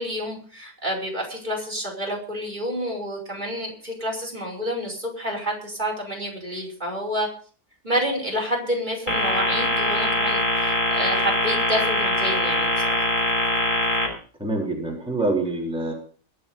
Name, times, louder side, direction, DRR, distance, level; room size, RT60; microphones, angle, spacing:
voice 1, 0.0-7.3 7.8-13.1, equal, 30° right, -2 dB, 5.4 m, -29 dB
sound 1, 9.1-14.1, left 1 dB, 30° left, 5.4 m, -22 dB
voice 2, 14.4-15.9, right 2 dB, 5° right, -2 dB, 3.9 m, -25 dB
22.5 x 7.7 x 5.4 m, 0.42 s
omnidirectional pair, 1.7 m